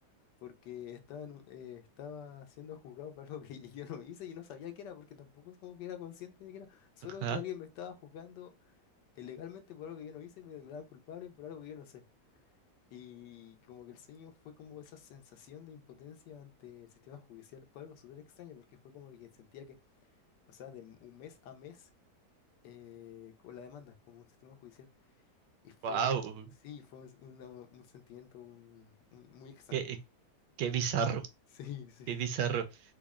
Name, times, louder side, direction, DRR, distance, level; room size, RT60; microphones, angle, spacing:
voice 1, 0.4-8.5 9.2-12.0 12.9-18.6 18.9-19.8 20.5-21.9 22.6-24.9 25.6-26.1 26.6-29.8 31.5-32.4, left 9 dB, 85° left, 1.3 m, -47 dB
voice 2, 25.8-26.5 29.7-30.0 30.6-31.2 32.1-32.7, right 7 dB, 80° right, 1.2 m, -31 dB
3.8 x 2.1 x 3.5 m
omnidirectional pair, 1.9 m